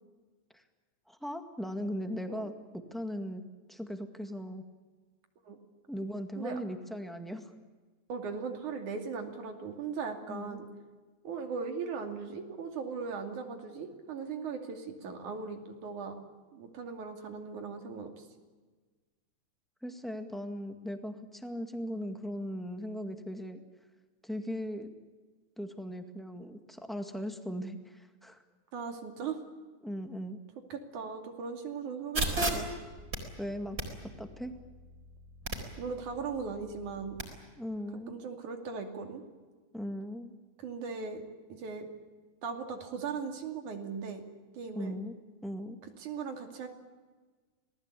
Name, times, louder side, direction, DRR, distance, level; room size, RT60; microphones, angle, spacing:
voice 1, 1.1-2.5 2.9-3.4 3.7-4.6 5.9-7.5 10.3-10.6 19.8-23.6 24.2-24.9 25.6-28.4 29.8-30.4 33.4-33.8 34.0-34.5 37.6-38.2 39.7-40.3 44.7-45.1 45.4-45.8, equal, ahead, 6 dB, 1.1 m, -38 dB
voice 2, 8.1-10.7 11.2-16.2 16.5-18.3 28.7-29.4 30.7-32.7 35.8-37.2 38.1-39.2 40.6-41.2 41.5-41.9 42.4-44.2 44.5-44.9 45.8-46.7, right 5 dB, 80° right, 4 dB, 4.1 m, -38 dB
sound 1, 32.1-37.2, right 1 dB, 30° right, 4.5 m, -37 dB
27.5 x 19.5 x 8.4 m, 1.4 s
omnidirectional pair, 3.4 m